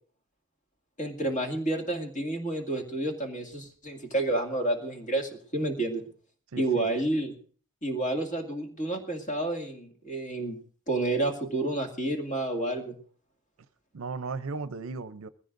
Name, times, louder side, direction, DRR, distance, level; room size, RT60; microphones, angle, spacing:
voice 1, 1.0-6.0 6.6-7.3 7.8-10.6 10.9-13.0, right 2 dB, 35° left, 2.2 m, -30 dB
voice 2, 6.5-6.9 13.9-15.3, right 4 dB, 65° right, 0.6 m, -36 dB
21.0 x 15.5 x 2.6 m
head